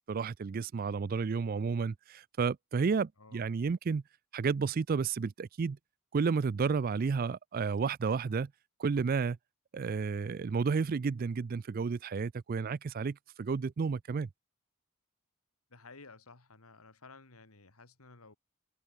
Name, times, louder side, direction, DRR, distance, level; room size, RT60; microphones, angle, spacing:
voice 1, 0.1-4.0 4.3-5.8 6.1-8.5 8.8-9.4 9.7-14.3, right 5 dB, 40° right, 0.3 m, -31 dB
voice 2, 3.2-3.5 15.7-18.3, left 3 dB, 75° left, 2.4 m, -54 dB
head